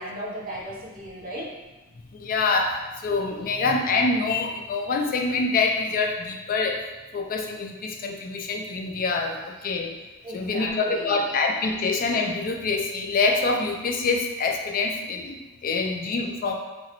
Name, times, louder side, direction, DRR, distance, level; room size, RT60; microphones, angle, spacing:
voice 1, 0.0-1.5 3.4-3.5 10.2-11.2, equal, 40° right, -6 dB, 0.7 m, -36 dB
voice 2, 2.1-6.8 7.1-9.9 10.3-16.5, left 3 dB, 40° left, 3 dB, 0.3 m, -25 dB
3.7 x 2.0 x 2.8 m, 1.2 s
head